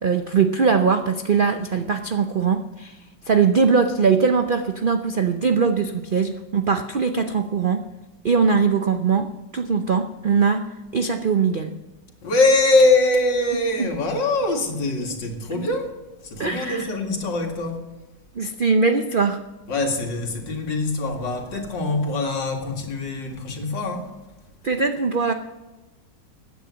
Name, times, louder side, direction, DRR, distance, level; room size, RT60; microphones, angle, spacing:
voice 1, 0.0-3.0 3.3-7.8 8.2-10.6 10.9-11.7 13.8-13.9 15.5-15.6 16.4-16.9 18.4-19.4 24.6-25.3, right 5 dB, 90° right, 7 dB, 0.4 m, -21 dB
voice 2, 12.2-15.9 16.2-17.8 19.7-24.1, left 2 dB, 80° left, 2 dB, 2.8 m, -22 dB
15.5 x 9.7 x 6.3 m, 1.1 s
omnidirectional pair, 1.9 m